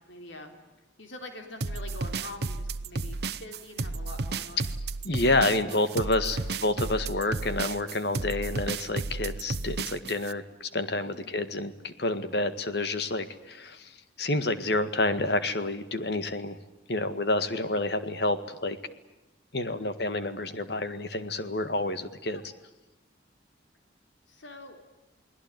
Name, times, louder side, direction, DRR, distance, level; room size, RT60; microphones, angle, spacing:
voice 1, 0.1-0.5 1.0-4.7 5.3-5.9 6.2-6.7 8.1-8.4 11.0-11.3 19.7-19.9 22.3-22.4 24.3-24.8, left 2 dB, 80° left, 5 dB, 3.7 m, -45 dB
sound 1, 1.6-10.3, right 3 dB, 60° right, 0.9 m, -33 dB
voice 2, 5.0-16.6 16.9-18.8 19.5-22.4, left 2 dB, 60° left, 11 dB, 1.9 m, -29 dB
29.5 x 20.0 x 9.3 m, 1.0 s
head